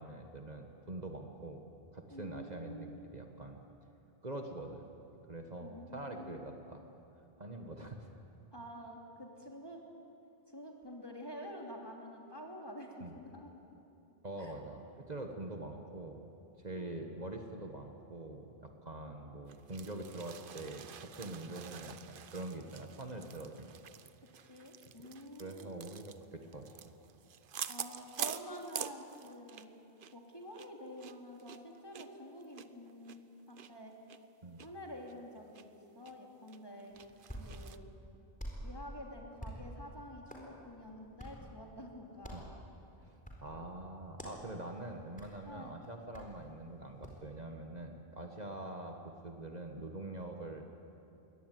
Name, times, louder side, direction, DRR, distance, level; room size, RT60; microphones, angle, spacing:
voice 1, 0.0-1.6 1.9-3.6 4.2-4.9 5.3-6.8 7.1-8.1 13.0-13.1 14.2-16.3 16.6-23.7 25.4-26.7 34.4-34.6 42.3-42.5 43.0-50.6, right 2 dB, 45° right, 3 dB, 1.5 m, -44 dB
voice 2, 2.1-3.1 5.6-6.4 8.5-9.8 10.5-13.1 13.3-13.5 14.4-14.5 16.8-17.0 24.4-25.9 27.6-29.7 30.1-33.9 34.6-35.7 35.9-37.0 37.4-37.9 38.6-42.4 45.4-45.8, equal, 25° left, 0 dB, 3.1 m, -48 dB
sound 1, 19.5-29.7 30.0-30.1 30.5-33.7 34.1-34.2 34.6-34.7 35.1-35.6 36.1-36.2 36.5-37.8, right 8 dB, 60° right, 0.9 m, -46 dB
Hands, 36.9-47.3, equal, 10° left, 4.1 m, -50 dB
22.5 x 18.0 x 9.2 m, 2.9 s
omnidirectional pair, 1.0 m